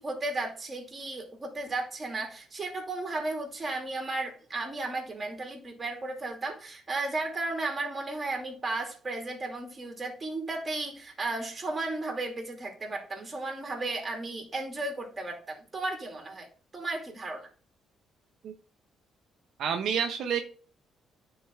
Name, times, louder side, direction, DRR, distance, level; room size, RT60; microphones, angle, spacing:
voice 1, 0.0-16.5 16.7-17.5, right 2 dB, 25° right, 2 dB, 2.4 m, -34 dB
voice 2, 19.6-20.4, right 7 dB, 70° right, 5 dB, 0.7 m, -28 dB
9.6 x 4.0 x 3.5 m, 0.40 s
cardioid pair, 100°, 0 cm